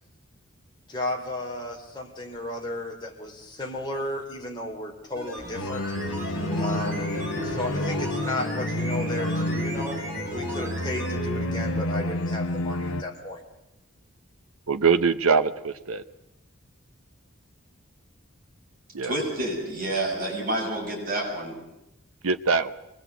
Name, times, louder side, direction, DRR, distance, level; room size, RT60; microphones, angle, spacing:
voice 1, 0.9-5.9 6.6-7.1 7.4-10.0 10.3-13.4, left 2 dB, 20° left, 0 dB, 3.2 m, -34 dB
sound 1, 5.1-11.2 11.5-11.6, right 1 dB, 10° right, 6.0 m, -39 dB
sound 2, 5.6-13.0, left 1 dB, 85° left, 1.1 m, -30 dB
sound 3, 5.9-11.8, equal, 65° right, 6.6 m, -34 dB
voice 2, 14.7-16.0 18.9-19.1 22.2-22.7, right 5 dB, 85° right, 11 dB, 0.8 m, -23 dB
voice 3, 19.0-21.6, right 1 dB, 40° right, -1 dB, 6.7 m, -29 dB
24.0 x 20.0 x 8.1 m, 0.89 s
head